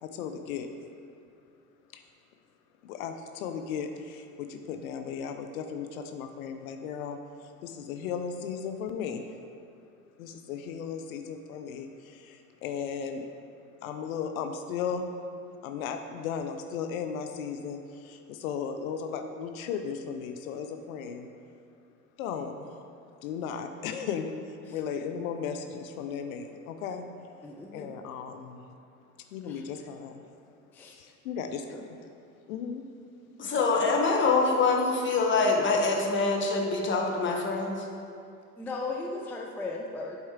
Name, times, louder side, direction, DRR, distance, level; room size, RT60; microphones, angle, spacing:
voice 1, 0.0-0.7 1.9-2.0 2.8-7.2 7.6-9.3 10.2-13.3 13.8-15.1 15.6-21.3 22.2-22.8 23.2-24.3 24.7-27.1 27.7-28.6 29.3-30.2 30.9-31.7 32.5-32.8, left 7 dB, 70° left, 6 dB, 0.6 m, -36 dB
voice 2, 27.4-28.0 29.5-29.6 30.7-31.0 31.7-31.8 38.6-40.2, left 3 dB, 5° left, 0 dB, 0.3 m, -36 dB
voice 3, 33.4-37.8, left 3 dB, 25° left, 1 dB, 1.0 m, -25 dB
8.0 x 4.2 x 3.6 m, 2.5 s
hypercardioid pair, 75°, 43 cm